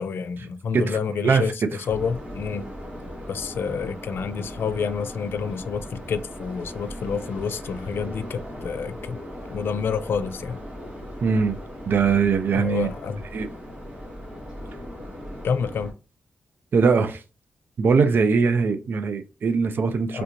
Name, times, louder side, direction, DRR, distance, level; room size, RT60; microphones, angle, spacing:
voice 1, 0.0-2.7 3.3-9.2 9.5-10.6 12.5-13.2 15.4-15.9 20.1-20.2, left 6 dB, 70° left, 0.3 m, -28 dB
voice 2, 0.7-1.5 11.2-11.6 11.9-12.9 13.3-13.5 16.7-17.2 17.8-20.2, right 5 dB, 60° right, 0.4 m, -21 dB
sound 1, 1.8-15.9, equal, 35° right, 1.2 m, -38 dB
3.3 x 2.5 x 2.9 m
cardioid pair, 95°, 4 cm